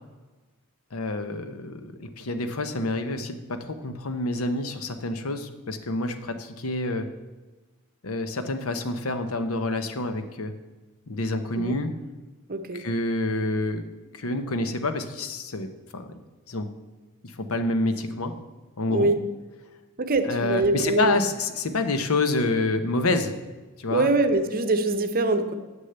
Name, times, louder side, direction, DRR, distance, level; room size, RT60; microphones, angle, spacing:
voice 1, 0.9-7.1 8.0-10.5 11.1-11.9 12.7-13.8 14.1-16.1 16.5-16.7 17.2-18.3 18.8-19.1 20.2-23.4 23.8-24.1, left 2 dB, 80° left, 8 dB, 0.9 m, -27 dB
voice 2, 12.5-12.8 18.9-19.2 20.0-21.2 23.9-25.5, right 2 dB, 45° right, 8 dB, 0.8 m, -23 dB
7.3 x 6.6 x 8.0 m, 1.2 s
head